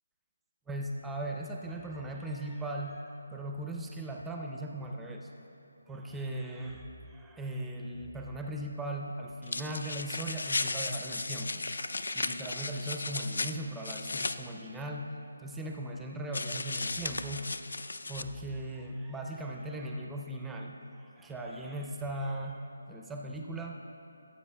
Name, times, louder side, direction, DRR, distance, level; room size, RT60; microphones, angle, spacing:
voice 1, 0.7-5.3 5.9-11.6 12.0-15.1 15.4-17.5 18.1-23.8, right 1 dB, 5° right, 1 dB, 0.4 m, -38 dB
sound 1, 9.4-14.4 16.3-18.2, left 3 dB, 70° left, 0.4 m, -35 dB
17.5 x 7.9 x 2.2 m, 2.9 s
figure-of-eight pair, 155°, 0 cm